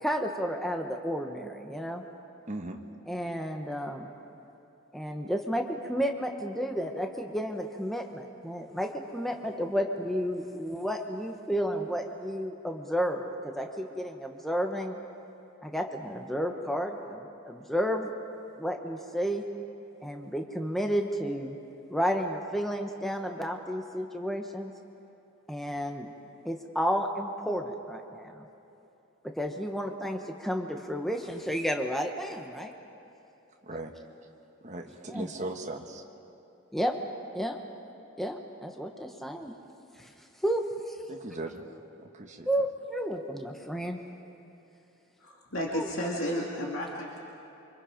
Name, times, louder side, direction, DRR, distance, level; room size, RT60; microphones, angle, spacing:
voice 1, 0.0-2.0 3.1-4.1 4.9-15.0 15.6-18.1 18.6-19.4 20.0-21.6 21.9-24.7 25.5-26.1 26.4-28.5 29.4-32.7 35.1-35.3 36.7-36.9 37.3-37.6 38.2-39.5 40.0-40.1 40.4-40.6 42.4-44.0 45.7-45.9, equal, ahead, 3 dB, 1.0 m, -32 dB
voice 2, 2.5-2.8 33.6-33.9 34.6-36.0 41.1-41.8 42.1-42.5, right 2 dB, 35° right, 3 dB, 1.4 m, -38 dB
voice 3, 45.2-47.2, equal, 70° left, -3 dB, 2.4 m, -32 dB
28.5 x 25.0 x 5.1 m, 2.9 s
head